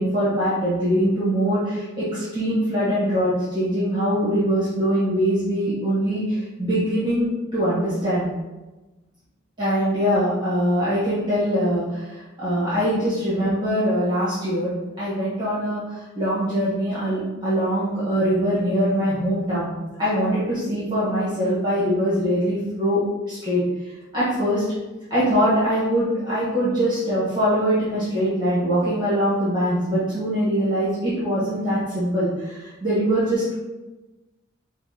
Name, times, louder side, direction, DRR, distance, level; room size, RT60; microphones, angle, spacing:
voice 1, 0.0-8.3 9.6-19.7 20.0-23.0 23.3-24.6 25.1-33.5, equal, 25° right, -11 dB, 1.3 m, -23 dB
5.5 x 2.3 x 2.9 m, 1.1 s
head